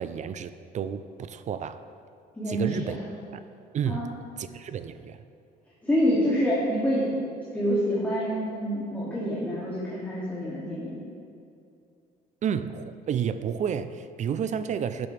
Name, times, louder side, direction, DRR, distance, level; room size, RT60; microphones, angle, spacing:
voice 1, 0.0-1.8 2.5-3.0 3.3-3.4 3.7-4.1 4.4-5.2 12.4-15.1, right 8 dB, 45° right, 12 dB, 0.5 m, -31 dB
voice 2, 2.4-3.0 3.9-4.1 5.8-7.1 7.5-11.0, equal, 10° left, -8 dB, 2.6 m, -27 dB
12.0 x 10.5 x 3.4 m, 2.5 s
cardioid pair, 110°, 17 cm